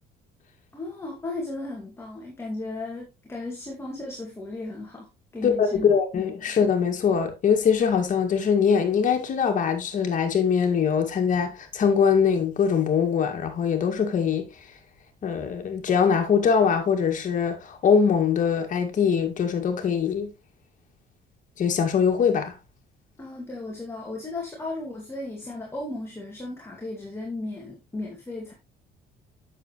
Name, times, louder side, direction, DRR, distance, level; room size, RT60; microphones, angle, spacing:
voice 1, 0.7-5.1 5.3-5.9 6.5-6.6 23.2-28.5, left 2 dB, 15° left, 2.2 m, -35 dB
voice 2, 5.4-14.5 15.2-20.3 21.6-22.5, left 6 dB, 50° left, 2.1 m, -22 dB
8.3 x 6.8 x 3.1 m
cardioid pair, 110°, 17 cm